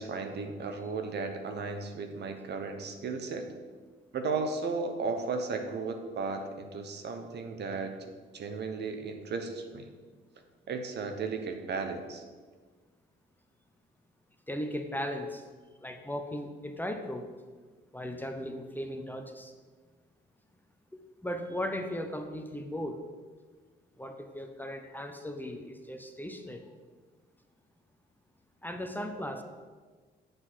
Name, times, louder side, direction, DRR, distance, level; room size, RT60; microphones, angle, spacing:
voice 1, 0.0-3.5 4.1-7.9 8.3-9.9 10.7-12.2, right 4 dB, 60° right, 6 dB, 1.0 m, -35 dB
voice 2, 14.5-15.4 15.8-17.3 17.9-19.5 20.9-23.0 24.0-26.7 28.6-29.4, equal, 10° left, 5 dB, 0.7 m, -37 dB
7.9 x 3.9 x 6.3 m, 1.4 s
cardioid pair, 90°, 20 cm